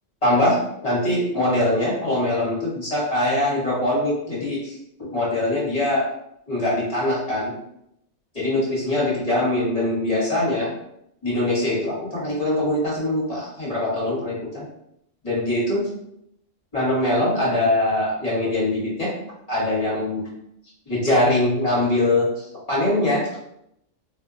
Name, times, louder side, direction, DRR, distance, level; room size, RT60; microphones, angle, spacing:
voice 1, 0.2-0.6 0.8-4.7 5.0-6.1 6.5-7.5 8.3-10.7 11.2-14.6 15.2-15.9 16.7-19.1 19.5-20.3 20.9-23.4, left 1 dB, 30° left, -7 dB, 1.1 m, -22 dB
2.5 x 2.1 x 3.7 m, 0.77 s
omnidirectional pair, 1.3 m